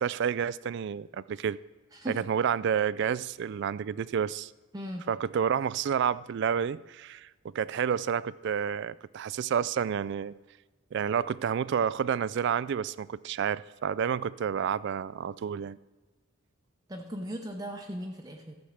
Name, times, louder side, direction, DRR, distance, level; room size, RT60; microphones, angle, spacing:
voice 1, 0.0-1.6 2.3-4.5 5.1-7.3 7.5-10.3 10.9-15.8, right 7 dB, 55° right, 0.3 m, -29 dB
voice 2, 1.9-2.3 4.7-5.1 16.9-18.5, equal, 15° right, 0.7 m, -38 dB
13.5 x 7.1 x 6.5 m
head